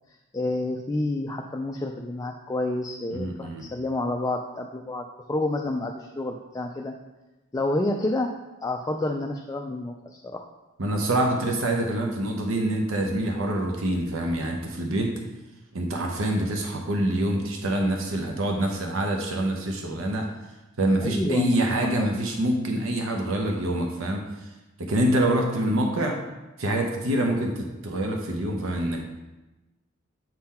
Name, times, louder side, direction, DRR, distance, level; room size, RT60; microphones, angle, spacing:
voice 1, 0.3-6.9 7.5-8.3 8.6-10.5 21.0-21.6 22.0-22.1, left 2 dB, 15° left, 2 dB, 0.3 m, -29 dB
voice 2, 3.1-3.7 10.8-15.1 15.7-20.3 20.8-24.5 24.8-26.2 26.6-29.1, right 1 dB, 80° right, 2 dB, 0.8 m, -26 dB
7.6 x 3.8 x 4.2 m, 1.1 s
head